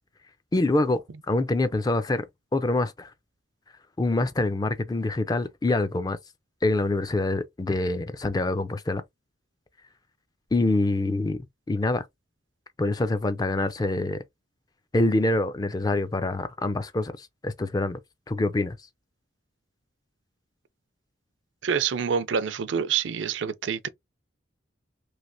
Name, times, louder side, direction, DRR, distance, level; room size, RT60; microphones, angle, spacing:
voice 1, 0.5-1.0 1.3-2.2 2.5-3.1 4.0-6.2 6.6-9.0 10.5-11.4 11.7-12.1 12.8-14.2 14.9-18.0 18.3-18.8, left 2 dB, 20° left, 0.4 m, -25 dB
voice 2, 21.6-23.9, right 7 dB, 75° right, 0.4 m, -27 dB
3.2 x 2.9 x 2.5 m
head